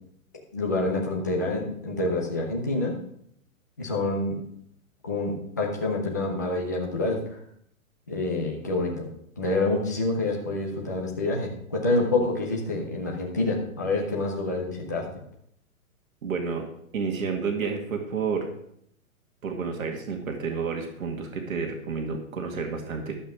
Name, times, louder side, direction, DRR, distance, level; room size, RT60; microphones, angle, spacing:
voice 1, 0.5-2.9 3.8-4.4 5.0-7.2 8.1-9.1 9.4-15.1, left 2 dB, 15° left, -1 dB, 0.5 m, -27 dB
voice 2, 16.2-16.7 16.9-18.5 19.4-23.2, right 5 dB, 70° right, 2 dB, 2.2 m, -30 dB
11.5 x 7.5 x 4.9 m, 0.71 s
hypercardioid pair, 175°, 43 cm